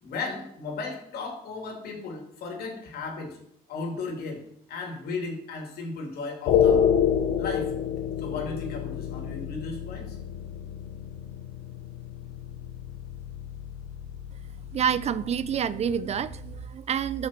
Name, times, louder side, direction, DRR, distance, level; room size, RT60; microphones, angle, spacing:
voice 1, 0.0-3.4 3.7-6.9 7.4-7.7 8.2-10.2, left 3 dB, 65° left, 2 dB, 2.9 m, -35 dB
sound 1, 6.5-16.7, left 8 dB, 85° left, 1.0 m, -29 dB
voice 2, 14.7-17.3, right 8 dB, 40° right, 16 dB, 0.4 m, -28 dB
13.5 x 6.0 x 4.4 m, 0.72 s
cardioid pair, 110°, 17 cm